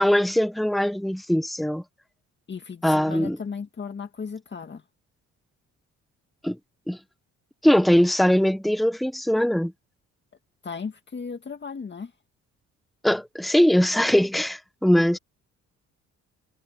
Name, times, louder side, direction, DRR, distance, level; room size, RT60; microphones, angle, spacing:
voice 1, 0.0-1.8 2.8-3.4 6.4-6.6 6.9-7.0 7.6-9.7 13.0-15.2, equal, ahead, 1.3 m, -21 dB
voice 2, 2.5-4.8 10.6-12.1, left 5 dB, 35° left, 2.1 m, -35 dB
cardioid pair, 90°, 30 cm